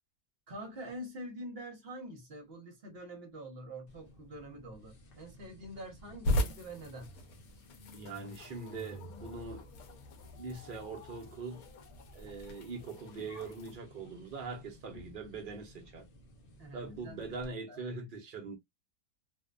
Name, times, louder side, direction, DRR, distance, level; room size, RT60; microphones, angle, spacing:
voice 1, 0.5-7.1 16.6-17.4 17.7-18.0, right 1 dB, 50° right, 0.9 m, -46 dB
sound 1, 3.9-17.5, left 1 dB, 55° left, 0.7 m, -54 dB
sound 2, 6.2-13.8, left 1 dB, 80° left, 1.0 m, -39 dB
voice 2, 7.9-9.7 10.4-11.6 12.1-16.1 16.7-18.6, right 4 dB, 70° right, 0.5 m, -42 dB
2.6 x 2.1 x 2.2 m
omnidirectional pair, 1.6 m